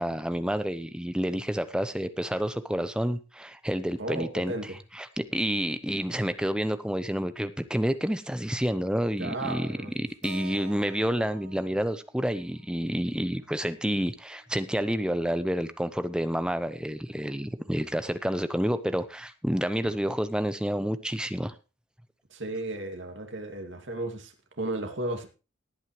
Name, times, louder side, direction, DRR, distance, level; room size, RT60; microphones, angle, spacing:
voice 1, 0.0-21.5, equal, 5° right, 0.8 m, -29 dB
voice 2, 4.0-4.8 9.2-9.9 19.8-19.9 22.3-25.3, right 2 dB, 70° right, 2.4 m, -34 dB
Keyboard (musical), 10.2-14.5, right 4 dB, 90° right, 2.9 m, -49 dB
18.5 x 9.0 x 3.2 m
head